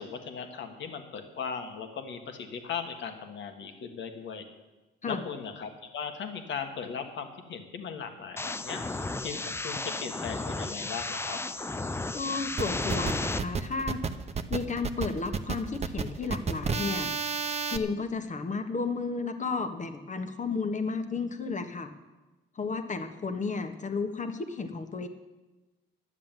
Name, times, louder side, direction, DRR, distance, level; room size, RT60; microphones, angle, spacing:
voice 1, 0.0-4.4 5.1-8.8 9.2-11.4, left 6 dB, 70° left, 6 dB, 1.7 m, -38 dB
sound 1, 8.4-13.4, left 2 dB, 10° left, 0.5 m, -33 dB
voice 2, 12.1-14.0 14.5-17.1 17.7-21.9 22.5-25.1, left 4 dB, 40° left, 7 dB, 1.4 m, -33 dB
sound 2, 12.6-17.8, right 5 dB, 35° right, 0.9 m, -32 dB
11.0 x 7.5 x 9.1 m, 1.1 s
cardioid pair, 90°, 20 cm